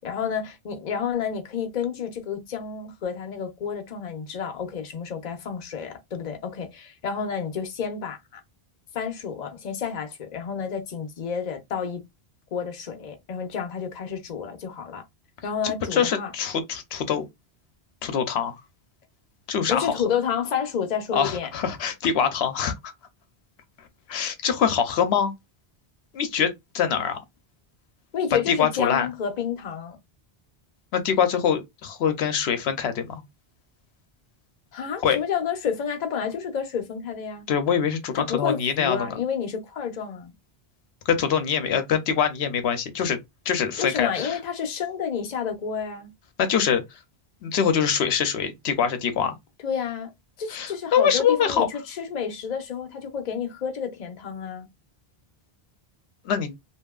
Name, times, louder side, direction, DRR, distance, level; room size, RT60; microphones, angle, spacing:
voice 1, 0.0-8.4 8.9-12.0 12.5-15.0 15.4-16.3 19.7-21.5 28.1-30.0 34.7-37.5 38.1-40.3 43.8-46.1 49.6-50.1 50.4-54.7, left 7 dB, 50° left, 0.7 m, -30 dB
voice 2, 15.6-17.3 18.0-18.5 19.5-20.0 21.1-22.9 24.1-25.3 26.1-27.2 28.5-29.1 30.9-33.2 35.0-35.2 37.5-39.1 41.1-43.2 43.5-44.4 46.4-46.8 47.4-49.3 50.5-51.7 56.3-56.5, left 7 dB, 90° left, 0.9 m, -24 dB
2.8 x 2.6 x 2.3 m
omnidirectional pair, 1.0 m